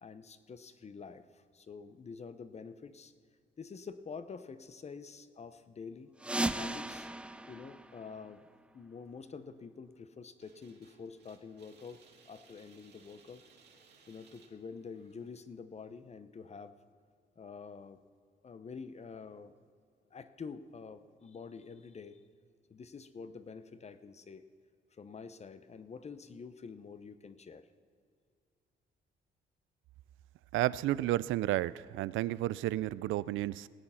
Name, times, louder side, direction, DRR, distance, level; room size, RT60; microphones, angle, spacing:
voice 1, 0.0-3.1 3.6-6.1 6.5-7.1 7.5-8.4 8.7-13.4 14.1-16.7 17.4-18.0 18.4-19.5 20.1-22.2 22.7-24.4 25.0-27.7, left 5 dB, 35° left, 12 dB, 0.8 m, -47 dB
sound 1, 6.2-8.8, right 1 dB, 5° right, 0.5 m, -37 dB
sound 2, 10.4-15.4, right 5 dB, 55° right, 2.1 m, -63 dB
voice 2, 30.5-33.7, right 15 dB, 80° right, 19 dB, 0.4 m, -32 dB
18.5 x 8.7 x 5.7 m, 2.2 s
cardioid pair, 90°, 20 cm